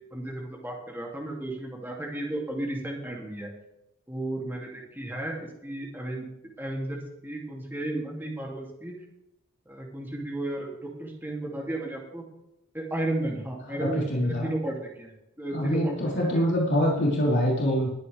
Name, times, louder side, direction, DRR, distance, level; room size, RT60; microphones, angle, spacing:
voice 1, 0.1-3.5 4.1-6.3 6.6-8.9 9.7-12.2 12.7-15.1 15.4-16.1, right 1 dB, 10° right, -2 dB, 2.8 m, -33 dB
voice 2, 13.8-14.5 15.5-17.9, equal, 55° left, -4 dB, 4.3 m, -25 dB
20.5 x 9.5 x 3.5 m, 0.87 s
head